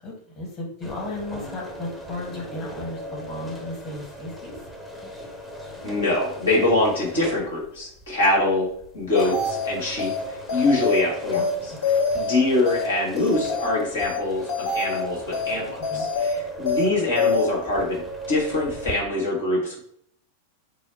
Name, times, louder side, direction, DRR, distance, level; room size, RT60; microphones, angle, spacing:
voice 1, 0.0-4.6 11.3-11.8 15.8-16.1, left 1 dB, 25° left, -3 dB, 1.3 m, -35 dB
sound 1, 0.8-18.9, equal, 5° left, 0.8 m, -38 dB
voice 2, 5.8-8.7 8.9-11.7 12.1-19.8, left 2 dB, 70° left, -3 dB, 1.6 m, -24 dB
sound 2, 9.2-9.7 10.0-10.2 10.5-11.0 11.3-11.5 11.8-12.3 12.7-12.8 13.2-13.7 14.0-14.2 14.5-15.0 15.3-15.5 15.8-16.3 16.7-16.8 17.2-17.5, left 4 dB, 55° left, 1.5 m, -25 dB
4.7 x 2.1 x 4.2 m, 0.67 s
figure-of-eight pair, 90°, 0 cm